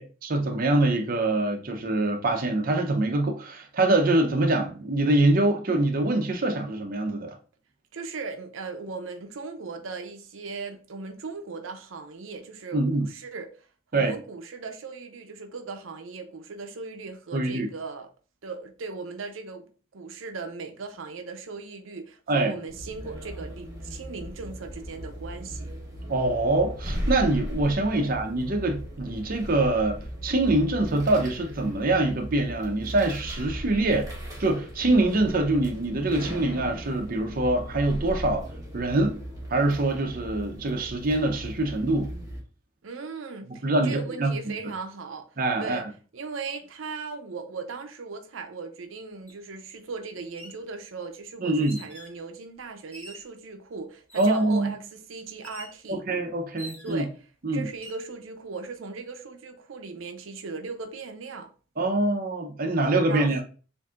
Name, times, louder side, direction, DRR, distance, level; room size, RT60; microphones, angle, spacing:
voice 1, 0.0-7.3 12.7-13.1 13.9-14.1 17.3-17.7 22.3-22.5 26.1-34.1 34.4-38.5 38.7-39.2 39.5-42.1 43.6-44.3 45.4-45.9 51.4-51.8 54.2-54.7 55.9-57.0 57.4-57.7 61.8-63.4, right 2 dB, 45° right, 0.6 m, -24 dB
voice 2, 7.9-13.7 13.9-18.1 18.4-25.7 27.9-28.1 42.8-45.3 45.6-45.9 46.1-56.0 56.8-57.1 57.5-61.5 63.1-63.4, right 4 dB, 85° right, 0.6 m, -38 dB
sound 1, 22.7-42.4, equal, 20° right, 1.2 m, -37 dB
sound 2, 49.3-49.4 50.2-50.6 51.6-52.2 52.9-53.3 54.1-54.5 55.4-55.8 56.6-57.1 57.7-58.1, right 1 dB, 10° left, 1.1 m, -45 dB
7.0 x 2.6 x 2.4 m
head